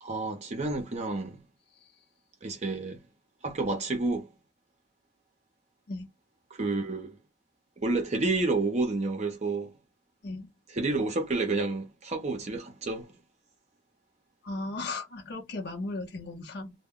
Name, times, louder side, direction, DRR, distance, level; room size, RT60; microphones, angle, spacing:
voice 1, 0.0-1.4 2.4-3.0 3.4-4.3 6.5-7.1 7.8-9.7 10.7-13.1, right 3 dB, 35° right, 0.6 m, -30 dB
voice 2, 14.4-16.7, left 2 dB, 60° left, 0.7 m, -36 dB
2.1 x 2.1 x 3.6 m
head